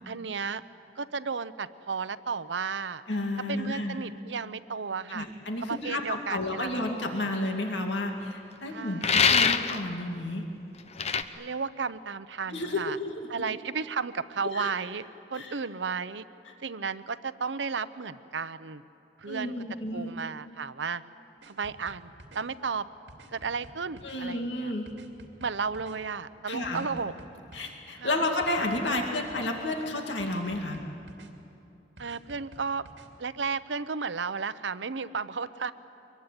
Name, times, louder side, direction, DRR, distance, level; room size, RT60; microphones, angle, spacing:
voice 1, 0.0-0.6 1.0-3.0 3.5-5.3 5.6-6.9 8.7-9.2 11.3-13.0 13.3-15.0 15.3-16.3 16.6-18.8 19.2-19.5 19.9-21.0 21.4-22.9 23.3-24.7 25.4-27.1 28.0-28.3 32.0-32.9 33.2-35.7, right 5 dB, 90° right, 14 dB, 0.8 m, -33 dB
voice 2, 3.1-4.0 5.1-10.4 12.5-13.5 14.5-14.7 15.3-15.6 19.3-20.1 24.0-24.9 26.5-26.9 27.5-30.8, left 2 dB, 85° left, 2 dB, 2.4 m, -31 dB
sound 1, 9.0-9.8 11.0-11.2, left 6 dB, 35° left, 0.9 m, -23 dB
sound 2, 21.4-22.4 23.1-24.2 24.8-26.0 26.6-27.7 28.4-29.5 30.2-31.3 32.0-33.1, right 1 dB, 70° right, 2.6 m, -50 dB
24.5 x 22.5 x 9.9 m, 2.9 s
head